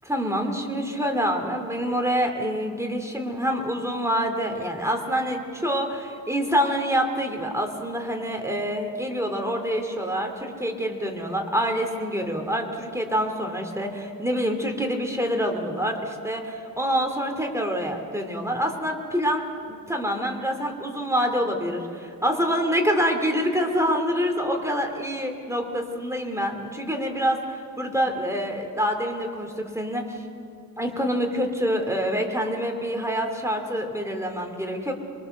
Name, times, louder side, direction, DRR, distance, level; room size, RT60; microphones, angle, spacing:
voice 1, 0.0-30.2 30.8-34.9, equal, 10° right, 3 dB, 2.7 m, -26 dB
25.5 x 23.0 x 6.6 m, 2.4 s
wide cardioid pair, 110°, 34 cm